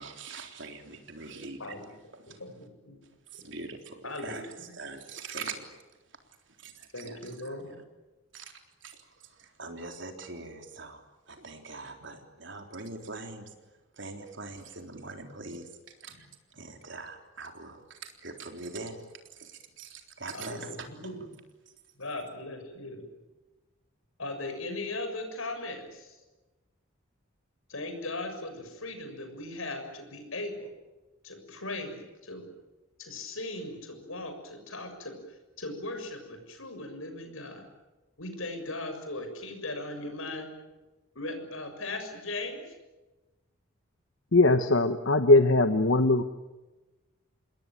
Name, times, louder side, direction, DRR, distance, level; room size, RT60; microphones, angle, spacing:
voice 1, 0.0-1.8 2.1-2.4 3.3-5.7 6.5-7.6 8.3-13.5 13.9-19.0 19.3-21.1, right 3 dB, 60° right, 4 dB, 3.7 m, -43 dB
voice 2, 2.3-3.0 4.0-4.7 6.9-7.7 20.3-21.1 22.0-23.1 24.2-26.2 27.7-30.7 31.2-32.4 33.0-37.6 38.2-40.5 41.1-42.7, left 2 dB, 80° left, 6 dB, 6.9 m, -38 dB
voice 3, 44.3-46.2, left 2 dB, 65° left, 9 dB, 1.1 m, -21 dB
28.0 x 21.0 x 9.2 m, 1.1 s
head